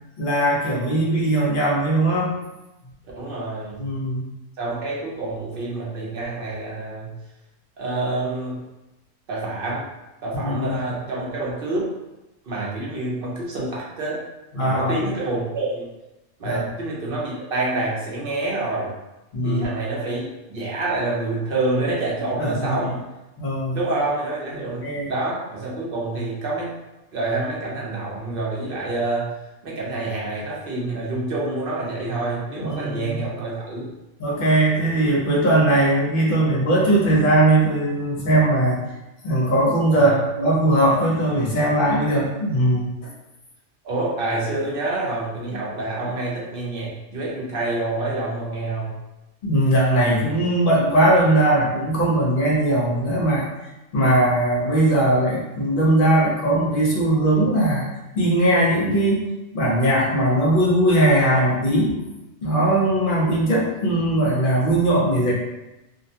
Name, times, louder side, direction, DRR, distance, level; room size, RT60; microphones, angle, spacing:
voice 1, 0.2-2.4 3.8-4.2 10.3-10.8 14.5-14.9 16.4-16.7 19.3-19.7 22.4-22.9 23.4-23.8 24.8-25.1 32.6-33.2 34.2-38.8 39.2-42.9 49.4-53.4 53.9-57.8 58.1-59.3 59.5-61.9 62.4-65.3, right 1 dB, 50° left, -4 dB, 0.8 m, -19 dB
voice 2, 3.2-3.8 4.6-7.1 7.8-8.6 9.3-9.8 10.2-11.9 12.5-14.2 14.5-15.9 16.4-18.9 19.4-23.0 23.7-26.7 27.1-29.3 29.6-33.9 39.9-40.2 43.8-48.9, right 2 dB, 55° right, -5 dB, 0.7 m, -27 dB
2.5 x 2.1 x 2.7 m, 0.99 s
omnidirectional pair, 1.3 m